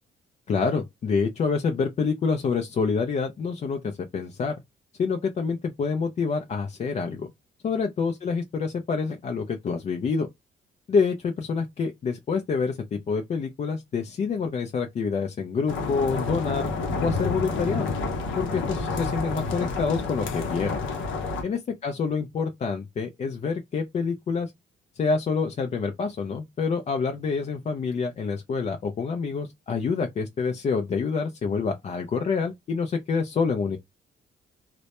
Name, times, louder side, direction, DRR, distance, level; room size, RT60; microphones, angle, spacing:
voice 1, 0.5-4.6 5.0-7.3 7.6-10.3 10.9-16.7 17.0-17.9 18.4-20.8 21.4-24.5 25.0-33.8, left 5 dB, 35° left, 0.4 m, -27 dB
sound 1, 15.7-21.4, left 3 dB, 75° left, 0.6 m, -29 dB
2.1 x 2.1 x 2.8 m
cardioid pair, 90°, 20 cm